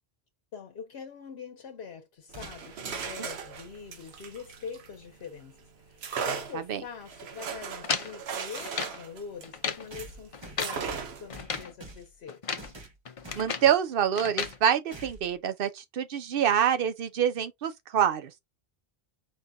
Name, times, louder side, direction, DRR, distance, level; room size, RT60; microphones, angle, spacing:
voice 1, 0.5-12.4, left 6 dB, 80° left, 1.0 m, -44 dB
sound 1, 2.3-2.9 5.0-5.1 6.2-6.3 9.9-12.2 12.6-13.5 14.4-14.6 14.9-15.4, right 2 dB, 30° right, 0.8 m, -47 dB
sound 2, 2.3-5.3 6.0-10.2 10.6-11.4, right 6 dB, 85° right, 1.1 m, -37 dB
sound 3, 7.8-9.0 9.4-9.9 10.3-10.8 11.3-11.7 12.3-12.7 13.0-13.7 14.2-14.6, left 6 dB, 40° left, 0.6 m, -34 dB
voice 2, 13.4-18.4, right 9 dB, 65° right, 0.7 m, -26 dB
4.4 x 2.7 x 3.3 m
omnidirectional pair, 1.0 m